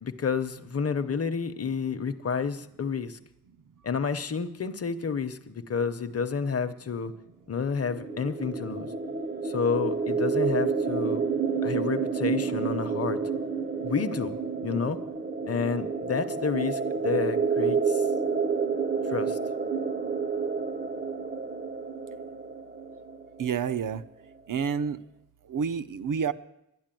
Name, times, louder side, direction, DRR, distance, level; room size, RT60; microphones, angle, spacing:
voice 1, 0.0-3.2 3.8-7.1 7.5-8.9 9.4-11.2 11.6-13.2 13.8-14.4 14.6-15.0 15.5-18.0 19.1-19.4, left 6 dB, 45° left, 10 dB, 0.8 m, -30 dB
sound 1, 7.8-23.5, right 5 dB, 25° right, 0.6 m, -29 dB
voice 2, 23.4-24.0 24.5-25.0 25.5-26.3, right 7 dB, 65° right, 12 dB, 0.7 m, -28 dB
11.5 x 11.0 x 9.0 m, 0.85 s
wide cardioid pair, 135°, 35 cm